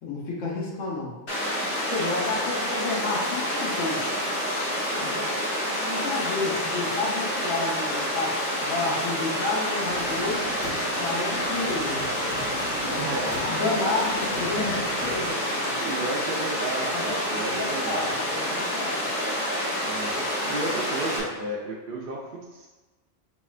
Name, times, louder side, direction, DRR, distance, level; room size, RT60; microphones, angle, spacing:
voice 1, 0.0-1.2 1.8-4.0 5.0-5.3 5.8-10.5 11.0-12.2 12.9-15.8 16.9-19.1 20.5-20.6, left 3 dB, 85° left, -3 dB, 1.3 m, -31 dB
Water, 1.3-21.2, equal, 55° left, 1.3 m, -28 dB
sound 1, 9.8-15.3, equal, 35° left, 1.2 m, -38 dB
voice 2, 13.0-13.4 15.8-18.1 19.8-20.2 20.4-22.7, right 2 dB, 55° right, -3 dB, 0.6 m, -33 dB
5.5 x 3.2 x 2.4 m, 1.2 s
omnidirectional pair, 1.3 m